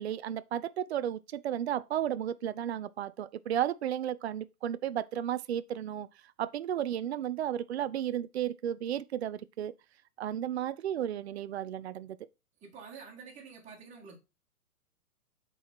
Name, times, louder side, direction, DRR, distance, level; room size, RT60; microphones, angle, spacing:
voice 1, 0.0-6.1 6.4-9.7 10.2-12.2, right 10 dB, 45° right, 0.5 m, -33 dB
voice 2, 12.6-14.2, right 5 dB, 15° right, 2.1 m, -48 dB
8.1 x 4.1 x 4.6 m
figure-of-eight pair, 115°, 45 cm